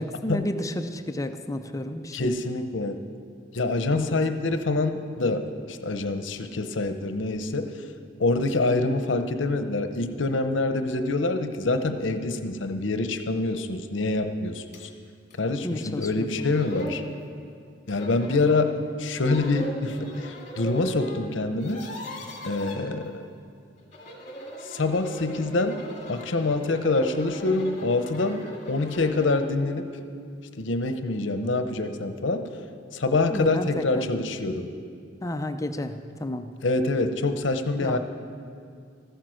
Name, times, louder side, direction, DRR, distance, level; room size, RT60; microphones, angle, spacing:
voice 1, 0.0-2.4 3.9-4.1 15.6-16.3 33.3-34.1 35.2-36.5 37.8-38.0, left 1 dB, 15° left, 8 dB, 0.5 m, -31 dB
voice 2, 2.1-3.0 3.5-7.7 8.2-14.9 15.4-17.0 17.9-21.9 22.4-23.2 24.6-25.8 26.1-29.9 30.6-32.5 32.9-34.7 36.6-38.0, left 2 dB, 75° left, 8 dB, 0.8 m, -26 dB
sound 1, 14.7-14.9 15.3-15.4 16.1-16.2 16.3-17.0 17.9-18.6 19.1-21.2 21.5-22.8 23.8-29.5, equal, 40° left, 2.0 m, -39 dB
14.0 x 9.3 x 6.3 m, 2.3 s
head